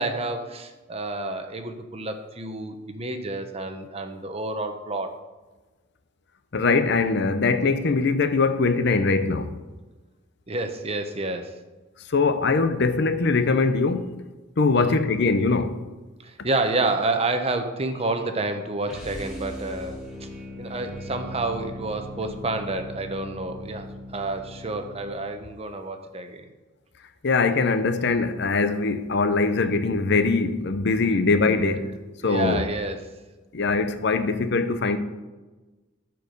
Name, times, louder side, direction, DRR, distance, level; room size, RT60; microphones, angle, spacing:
voice 1, 0.0-5.1 10.5-11.6 14.7-15.0 16.2-20.3 20.6-26.5 32.2-33.1, right 2 dB, 30° right, 0.8 m, -29 dB
voice 2, 6.5-9.6 12.1-14.2 14.6-15.8 27.2-31.9 32.2-32.6 33.5-35.0, left 3 dB, 60° left, 0.7 m, -22 dB
sound 1, 18.8-25.3, equal, ahead, 2.6 m, -39 dB
13.0 x 4.6 x 5.2 m
head